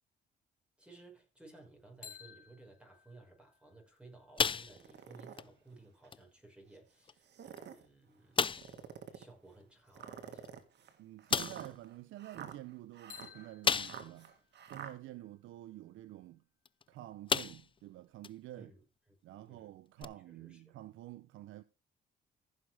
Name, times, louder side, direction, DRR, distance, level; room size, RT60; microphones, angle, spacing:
voice 1, 0.8-8.6 9.1-10.6 18.6-18.8 19.3-19.7 20.0-20.6, right 2 dB, 5° right, 5.2 m, -58 dB
sound 1, 2.0-5.9 13.1-17.0, left 7 dB, 45° left, 3.8 m, -58 dB
sound 2, 4.4-5.1 5.4-5.6 6.1-6.2 7.1-7.2 7.6-7.7 8.4-8.8 10.4-10.5 11.3-11.7 13.6-14.2 14.7-14.8 16.7-16.8 17.3-17.8 18.2-18.3 20.0-20.1, left 6 dB, 25° left, 0.4 m, -32 dB
sound 3, 4.7-5.4 6.0-6.1 7.2-7.9 8.5-9.3 9.9-14.9, right 8 dB, 60° right, 1.9 m, -49 dB
voice 2, 11.0-14.3 14.6-16.4 16.9-18.7 19.2-21.6, right 14 dB, 85° right, 0.7 m, -49 dB
15.0 x 6.4 x 3.5 m
cardioid pair, 90°, 20 cm